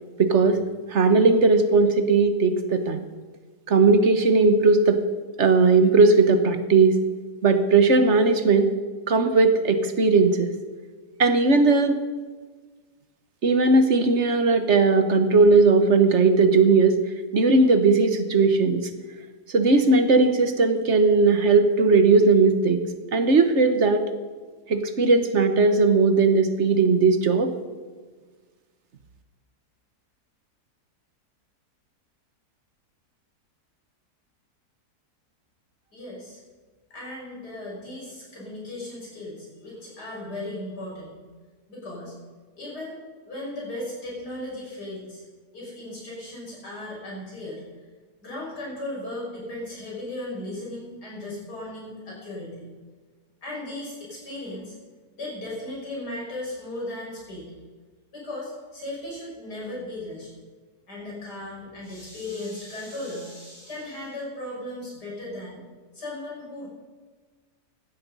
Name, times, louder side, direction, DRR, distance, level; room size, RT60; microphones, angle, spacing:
voice 1, 0.2-0.6 0.9-3.0 3.7-5.0 5.4-7.0 7.4-8.7 9.1-10.5 11.2-12.0 13.4-17.0 17.3-18.9 19.5-22.8 23.1-24.0 24.7-27.5, right 3 dB, 50° right, 8 dB, 1.4 m, -18 dB
voice 2, 35.9-36.4 36.9-41.2 41.7-42.1 42.6-43.0 43.3-45.2 45.5-47.6 48.2-52.7 53.4-54.7 55.2-57.5 58.1-60.3 60.9-65.6 65.9-66.7, left 1 dB, 85° left, -5 dB, 6.9 m, -36 dB
16.5 x 12.0 x 5.5 m, 1.4 s
omnidirectional pair, 1.7 m